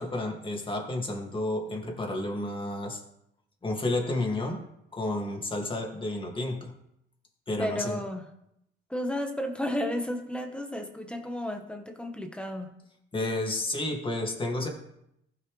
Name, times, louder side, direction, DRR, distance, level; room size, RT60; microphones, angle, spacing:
voice 1, 0.0-3.0 3.6-4.6 4.9-6.7 7.5-8.0 13.1-14.7, left 2 dB, 25° left, 0 dB, 2.3 m, -31 dB
voice 2, 7.6-8.3 8.9-12.7, left 1 dB, 5° left, 4 dB, 1.3 m, -32 dB
15.0 x 6.0 x 3.3 m, 0.79 s
cardioid pair, 90°, 20 cm